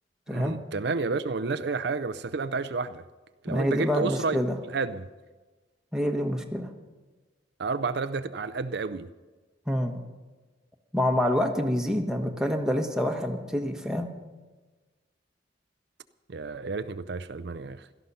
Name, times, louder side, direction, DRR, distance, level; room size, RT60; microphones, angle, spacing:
voice 1, 0.3-3.0 3.4-4.4 4.7-5.1 7.6-9.1 16.3-17.9, right 4 dB, 65° right, 0.5 m, -30 dB
voice 2, 3.5-4.6 5.9-6.7 9.7-10.0 10.9-14.1, equal, 5° right, 1.3 m, -27 dB
17.0 x 13.0 x 5.6 m
head